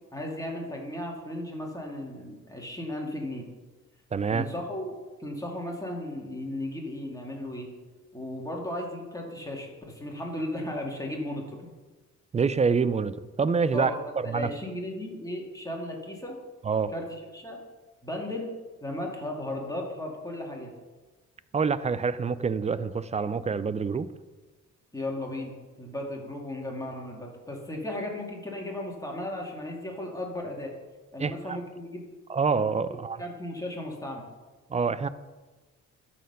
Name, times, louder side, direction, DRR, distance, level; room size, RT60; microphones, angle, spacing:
voice 1, 0.1-3.5 4.3-7.7 8.1-11.7 13.7-16.4 16.9-17.0 17.3-17.6 18.0-18.5 18.8-20.7 24.9-25.5 25.8-30.7 31.1-32.0 33.2-34.3, left 1 dB, 10° left, -1 dB, 2.2 m, -35 dB
voice 2, 4.1-4.5 12.3-13.9 14.2-14.5 16.6-16.9 21.5-24.1 31.2-31.6 32.3-33.2 34.7-35.1, right 5 dB, 25° right, 15 dB, 0.4 m, -26 dB
12.5 x 4.3 x 5.4 m, 1.2 s
cardioid pair, 90°, 30 cm